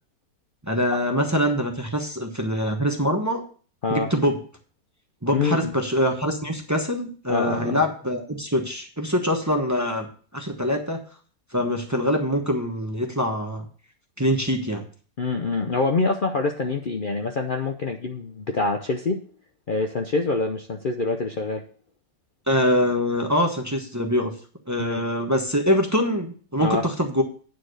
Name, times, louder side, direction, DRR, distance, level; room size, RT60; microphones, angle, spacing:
voice 1, 0.6-3.4 3.9-4.3 5.2-11.0 11.5-13.7 14.2-14.8 22.5-24.3 24.7-27.2, equal, 15° right, 3 dB, 0.8 m, -24 dB
voice 2, 5.3-5.7 7.3-7.8 15.2-19.2 19.7-21.6 24.8-25.0 26.6-26.8, left 3 dB, 75° left, 3 dB, 0.4 m, -25 dB
9.4 x 4.6 x 6.3 m, 0.43 s
omnidirectional pair, 1.9 m